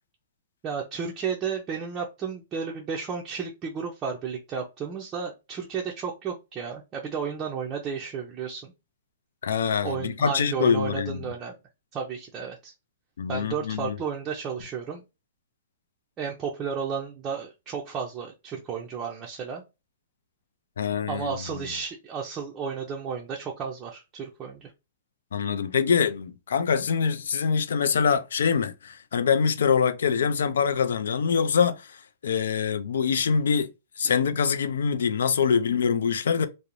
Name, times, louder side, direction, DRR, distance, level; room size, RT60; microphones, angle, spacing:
voice 1, 0.6-8.7 9.8-11.6 11.9-12.7 13.3-15.0 16.2-19.6 21.1-24.7, right 6 dB, 20° right, 0.4 m, -33 dB
voice 2, 9.4-11.2 13.2-14.0 20.8-21.4 25.3-32.0 32.2-33.7 34.0-36.5, left 6 dB, 80° left, 0.3 m, -24 dB
2.5 x 2.0 x 2.9 m
hypercardioid pair, 155°, 0 cm